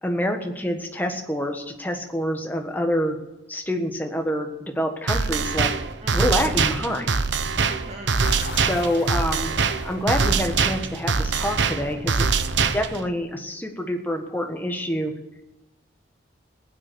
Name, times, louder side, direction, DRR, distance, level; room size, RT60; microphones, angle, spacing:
voice 1, 0.0-3.2 3.5-5.7 6.1-7.1 8.5-9.5 9.8-12.2 12.7-15.1, equal, 10° left, 3 dB, 1.5 m, -27 dB
sound 1, 5.1-13.1, right 5 dB, 75° right, 0.9 m, -23 dB
voice 2, 6.0-6.6 7.6-8.3 12.4-12.8, right 2 dB, 35° right, 1 dB, 2.7 m, -42 dB
sound 2, 8.2-12.8, left 2 dB, 60° left, 3.6 m, -40 dB
16.0 x 9.5 x 8.0 m, 1.0 s
head